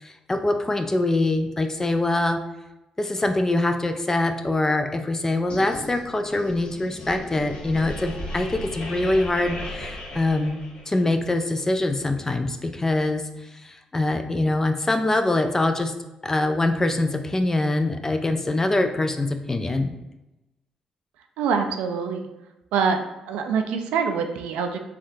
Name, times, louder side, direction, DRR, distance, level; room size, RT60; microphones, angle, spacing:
voice 1, 0.0-2.4 3.0-10.6 10.9-13.2 13.6-15.9 16.2-19.9, left 2 dB, 20° left, 7 dB, 0.4 m, -24 dB
sound 1, 5.5-11.1, left 1 dB, 60° left, 0.7 m, -36 dB
voice 2, 21.4-22.3 22.7-23.0 23.3-24.8, right 6 dB, 85° right, 6 dB, 0.3 m, -24 dB
3.5 x 2.4 x 2.6 m, 0.98 s
supercardioid pair, 55°, 2 cm